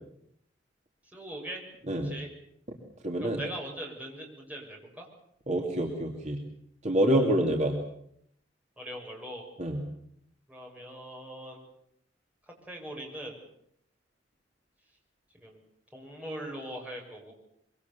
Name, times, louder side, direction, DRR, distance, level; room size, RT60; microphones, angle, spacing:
voice 1, 1.1-1.6 2.0-2.3 3.2-5.1 8.8-9.5 10.5-11.6 12.6-13.4 15.3-15.6 15.9-17.3, right 1 dB, 10° right, -1 dB, 6.9 m, -41 dB
voice 2, 3.0-3.4 5.5-6.4 6.8-7.8 9.6-9.8, right 1 dB, 40° right, 1 dB, 2.8 m, -26 dB
24.5 x 24.0 x 7.1 m, 0.72 s
head